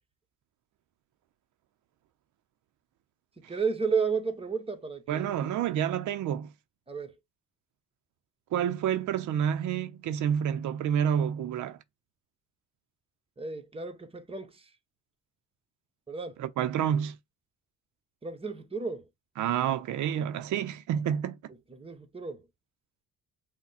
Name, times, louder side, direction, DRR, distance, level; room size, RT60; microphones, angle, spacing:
voice 1, 3.4-5.3 6.9-7.1 13.4-14.6 16.1-16.4 18.2-19.1 21.7-22.4, right 5 dB, 20° right, 1.1 m, -32 dB
voice 2, 5.1-6.5 8.5-11.8 16.4-17.1 19.4-21.4, right 9 dB, 75° right, 0.6 m, -29 dB
5.8 x 2.2 x 4.1 m
cardioid pair, 90°, 30 cm